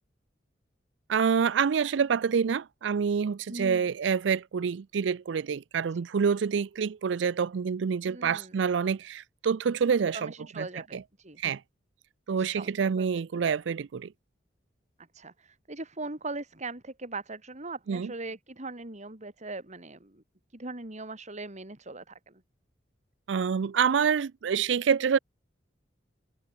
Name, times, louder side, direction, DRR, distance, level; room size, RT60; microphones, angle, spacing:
voice 1, 1.1-10.7 10.9-11.0 11.4-11.6 12.3-14.1 17.9-18.1 23.3-25.2, right 6 dB, 70° right, 0.4 m, -27 dB
voice 2, 3.5-3.9 8.1-8.6 10.1-11.4 12.3-13.1 15.1-20.2 20.5-22.4, right 3 dB, 40° right, 3.1 m, -40 dB
head